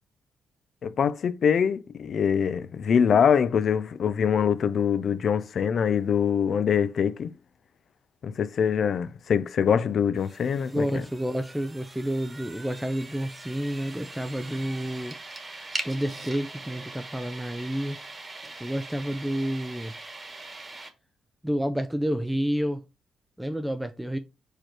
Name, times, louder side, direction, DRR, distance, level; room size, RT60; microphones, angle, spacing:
voice 1, 0.8-7.3 8.2-11.1, left 7 dB, 60° left, 0.5 m, -24 dB
sound 1, 10.2-20.9, right 2 dB, 25° right, 1.3 m, -41 dB
voice 2, 10.7-15.2 15.8-18.0 18.6-19.9 21.4-22.8 23.4-24.2, equal, 5° right, 0.5 m, -29 dB
4.9 x 4.4 x 4.5 m
cardioid pair, 90°, 0 cm